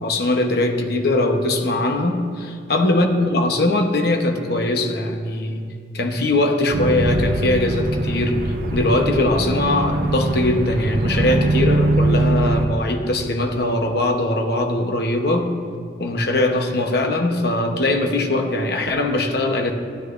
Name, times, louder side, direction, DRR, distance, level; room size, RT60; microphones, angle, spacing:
voice 1, 0.0-5.6 5.9-15.6 16.0-19.7, left 2 dB, 60° left, 4 dB, 1.0 m, -21 dB
sound 1, 6.7-12.7, right 2 dB, 50° right, 0.7 m, -22 dB
15.0 x 9.7 x 2.6 m, 2.3 s
head